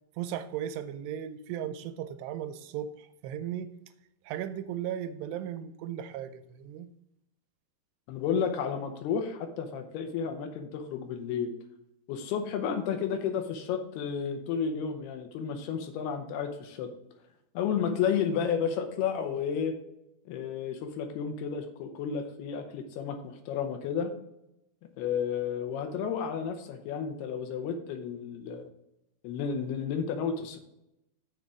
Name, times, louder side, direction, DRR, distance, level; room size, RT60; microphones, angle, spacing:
voice 1, 0.2-3.7 4.3-6.9, right 10 dB, 85° right, 12 dB, 2.7 m, -36 dB
voice 2, 8.1-11.5 12.1-16.9 17.5-19.7 20.3-24.1 25.0-28.7 29.2-30.6, left 7 dB, 75° left, 6 dB, 2.7 m, -32 dB
6.7 x 6.4 x 5.0 m, 0.85 s
omnidirectional pair, 4.8 m